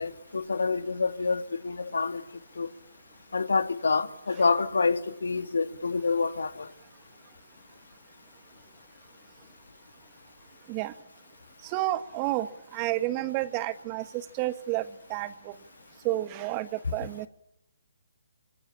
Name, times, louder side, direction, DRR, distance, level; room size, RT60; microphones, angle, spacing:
voice 1, 0.0-2.2 2.6-2.7 3.3-6.7, left 4 dB, 80° left, 2.5 m, -27 dB
voice 2, 11.7-12.5 12.7-14.0 14.4-15.5 16.0-17.3, right 16 dB, 25° right, 1.6 m, -30 dB
26.5 x 25.0 x 8.7 m
hypercardioid pair, 145°, 0 cm